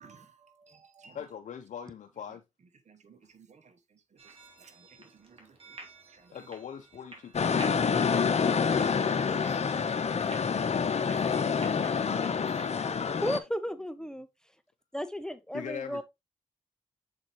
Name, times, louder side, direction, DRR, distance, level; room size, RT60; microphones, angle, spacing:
voice 1, 0.0-1.2 2.9-3.7 4.7-5.7 6.1-6.3, right 5 dB, 65° right, 1.1 m, -57 dB
voice 2, 1.1-2.4 6.3-8.7 15.5-16.0, left 8 dB, 80° left, 0.6 m, -44 dB
sound 1, 4.2-12.7, right 3 dB, 50° right, 2.6 m, -52 dB
sound 2, 7.3-13.4, left 6 dB, 60° left, 0.9 m, -27 dB
voice 3, 13.2-14.3 14.9-16.0, equal, 5° left, 0.8 m, -34 dB
7.5 x 4.2 x 3.0 m
cardioid pair, 50°, 13 cm